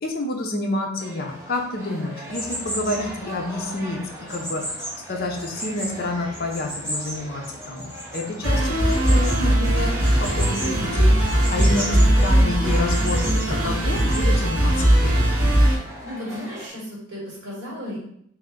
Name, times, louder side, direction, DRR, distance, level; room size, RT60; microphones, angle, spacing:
voice 1, 0.0-4.0 4.3-4.8 5.1-14.7 15.0-15.2, left 2 dB, 45° left, 1 dB, 0.5 m, -29 dB
sound 1, 1.0-16.7, equal, 15° right, 0.6 m, -42 dB
sound 2, 2.3-14.2, equal, 5° left, 1.4 m, -36 dB
sound 3, 8.4-15.8, right 1 dB, 75° right, 1.1 m, -19 dB
voice 2, 15.7-18.0, left 1 dB, 55° right, -4 dB, 1.4 m, -35 dB
3.4 x 2.5 x 3.6 m, 0.70 s
head